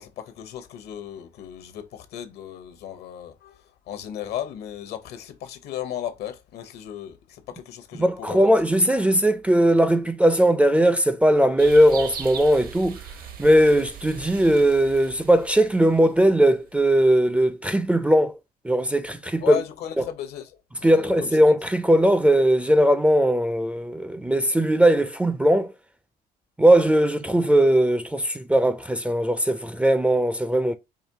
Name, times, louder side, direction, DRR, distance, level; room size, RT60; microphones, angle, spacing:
voice 1, 0.0-8.5 19.4-21.6, left 10 dB, 75° left, 0.8 m, -35 dB
voice 2, 8.0-13.0 13.4-18.4 18.6-19.6 20.0-20.1 20.8-25.7 26.6-30.7, right 1 dB, 5° right, 0.3 m, -19 dB
sound 1, 11.6-16.6, right 7 dB, 60° right, 0.8 m, -40 dB
4.9 x 2.7 x 2.7 m
cardioid pair, 110°, 17 cm